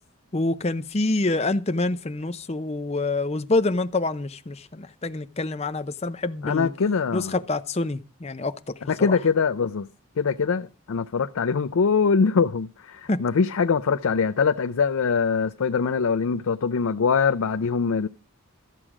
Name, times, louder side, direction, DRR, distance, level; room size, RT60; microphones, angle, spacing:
voice 1, 0.3-6.7 7.1-9.2 13.1-13.2, left 2 dB, 30° left, 0.6 m, -26 dB
voice 2, 6.4-7.3 8.9-9.9 10.2-18.1, left 5 dB, 70° left, 0.5 m, -23 dB
13.0 x 7.5 x 4.9 m
head